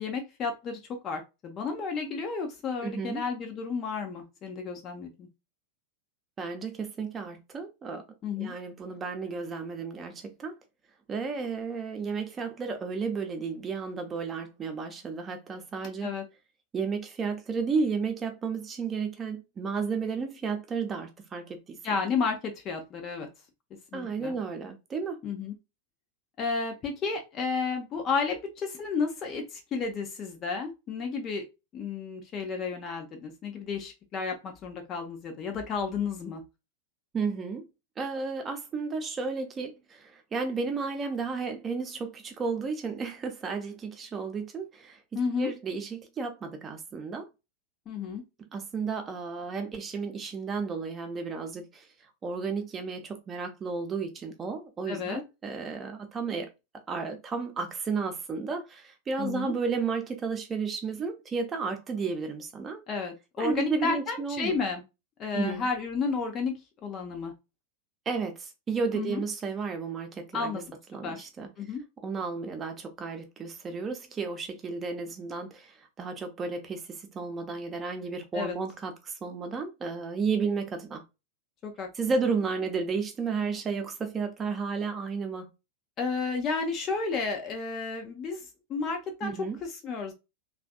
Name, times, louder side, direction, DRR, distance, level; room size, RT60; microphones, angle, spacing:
voice 1, 0.0-5.3 8.2-8.5 16.0-16.2 21.8-23.3 23.9-24.4 25.2-25.5 26.4-31.4 31.7-36.4 45.1-45.5 47.9-48.2 54.9-55.2 59.2-59.5 62.9-64.8 65.2-67.3 68.9-69.2 70.3-70.6 71.0-71.3 71.6-71.8 78.3-78.6 81.6-81.9 86.0-88.4 88.7-90.1, left 5 dB, 30° left, 0.7 m, -32 dB
voice 2, 2.8-3.2 6.4-8.0 8.4-10.5 11.1-16.1 16.7-21.8 23.9-25.2 37.1-37.6 38.0-45.0 45.4-47.3 48.5-51.8 52.2-56.5 56.9-62.8 63.4-64.6 65.3-65.7 68.1-70.6 70.9-71.5 72.0-75.7 76.0-76.8 77.1-81.0 81.9-85.5 89.2-89.6, right 5 dB, 20° right, 0.8 m, -33 dB
3.3 x 2.4 x 2.3 m
figure-of-eight pair, 90°, 0 cm